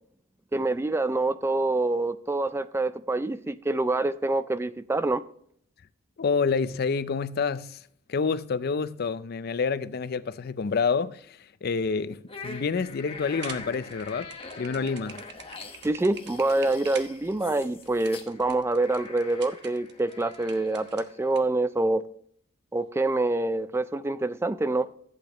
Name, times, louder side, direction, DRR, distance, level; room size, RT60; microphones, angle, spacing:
voice 1, 0.5-5.2 15.8-22.0 22.7-24.9, right 2 dB, 15° right, 0.3 m, -26 dB
voice 2, 6.2-7.8 8.1-14.3 14.6-15.2, left 5 dB, 50° left, 0.4 m, -28 dB
sound 1, 12.3-21.5, left 3 dB, 30° left, 1.2 m, -44 dB
sound 2, 13.3-21.4, right 6 dB, 60° right, 1.1 m, -45 dB
15.0 x 8.4 x 3.0 m
head